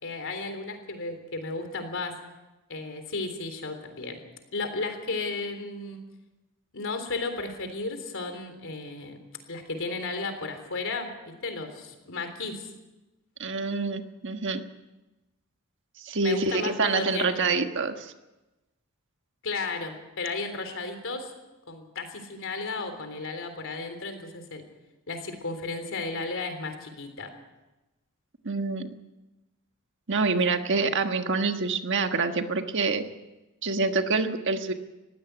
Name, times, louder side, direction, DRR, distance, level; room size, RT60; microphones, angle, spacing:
voice 1, 0.0-2.2 2.7-4.2 4.5-6.0 6.7-9.2 9.5-12.7 16.2-17.5 19.4-21.3 21.7-24.6 25.1-27.3, left 3 dB, 65° left, 7 dB, 3.6 m, -34 dB
voice 2, 13.4-14.6 16.0-18.1 28.4-28.9 30.1-33.0 33.6-34.7, right 4 dB, 60° right, 7 dB, 1.5 m, -26 dB
20.5 x 15.5 x 8.1 m, 1.1 s
head